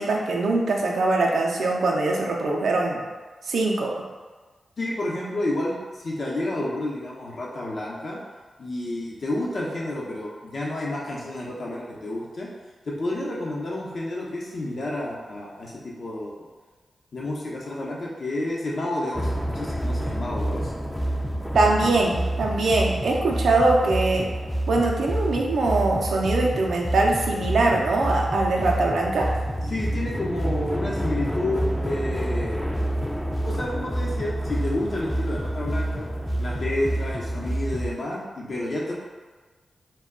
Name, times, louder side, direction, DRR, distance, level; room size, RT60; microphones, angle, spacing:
voice 1, 0.0-3.0 3.4-3.9 21.5-24.3 24.7-29.3, right 2 dB, 80° right, -1 dB, 0.4 m, -22 dB
voice 2, 4.8-8.2 8.6-12.5 12.9-16.5 17.1-20.7 29.7-32.6 33.4-36.1 36.4-38.9, left 1 dB, 65° left, -4 dB, 0.7 m, -30 dB
sound 1, 19.1-38.0, right 1 dB, 5° left, 0.3 m, -28 dB
2.2 x 2.2 x 3.6 m, 1.3 s
supercardioid pair, 45°, 0 cm